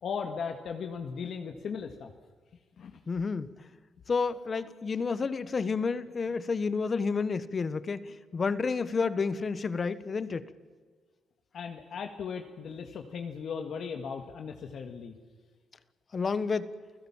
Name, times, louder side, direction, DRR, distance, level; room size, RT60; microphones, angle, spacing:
voice 1, 0.0-2.1 2.8-3.0 11.5-15.1, left 6 dB, 60° left, 1.8 m, -37 dB
voice 2, 3.1-3.7 4.1-10.5 16.1-16.7, left 4 dB, 40° left, 1.3 m, -30 dB
29.0 x 16.0 x 7.3 m
cardioid pair, 90°, 0 cm